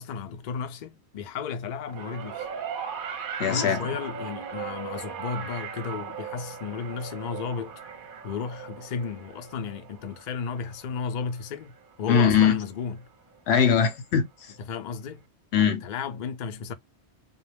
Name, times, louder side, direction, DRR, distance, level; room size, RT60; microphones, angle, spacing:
voice 1, 0.0-2.5 3.4-7.8 8.2-13.1 14.6-15.2 15.8-16.7, left 6 dB, 55° left, 0.5 m, -34 dB
sound 1, 1.9-12.3 13.3-13.4, right 7 dB, 55° right, 0.7 m, -38 dB
voice 2, 3.4-3.8 12.1-12.6 13.5-14.5 15.5-15.8, left 7 dB, 80° left, 0.9 m, -21 dB
2.3 x 2.1 x 3.2 m
omnidirectional pair, 1.1 m